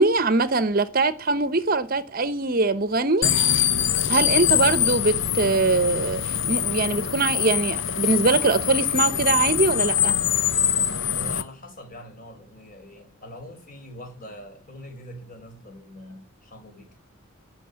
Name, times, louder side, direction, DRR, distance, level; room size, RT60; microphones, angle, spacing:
voice 1, 0.0-3.3 4.1-10.2, right 3 dB, 40° right, 0.9 m, -22 dB
sound 1, 3.2-11.4, left 9 dB, 60° left, 0.9 m, -23 dB
voice 2, 11.1-17.0, equal, 40° left, 4.9 m, -43 dB
17.0 x 6.6 x 9.6 m
head